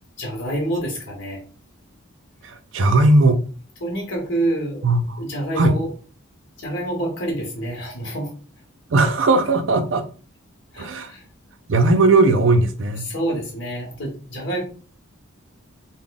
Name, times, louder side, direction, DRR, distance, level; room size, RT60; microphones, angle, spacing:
voice 1, 0.2-1.4 3.8-4.8 5.2-5.9 6.6-8.3 10.7-11.2 13.0-14.6, right 1 dB, 60° left, 1.1 m, -27 dB
voice 2, 2.4-3.4 4.8-5.2 5.5-5.8 8.9-10.0 10.8-11.1 11.7-13.1, right 2 dB, 60° right, 0.5 m, -17 dB
3.5 x 2.2 x 3.8 m
head